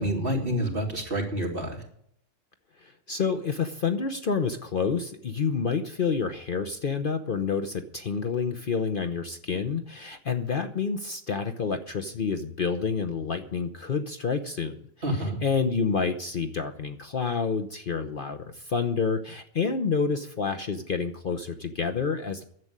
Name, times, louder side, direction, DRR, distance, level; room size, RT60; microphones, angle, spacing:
voice 1, 0.0-1.8 15.0-15.4, equal, 45° right, 0 dB, 3.0 m, -28 dB
voice 2, 2.8-22.4, left 5 dB, 45° left, 8 dB, 0.9 m, -29 dB
11.0 x 7.7 x 9.7 m, 0.67 s
omnidirectional pair, 1.3 m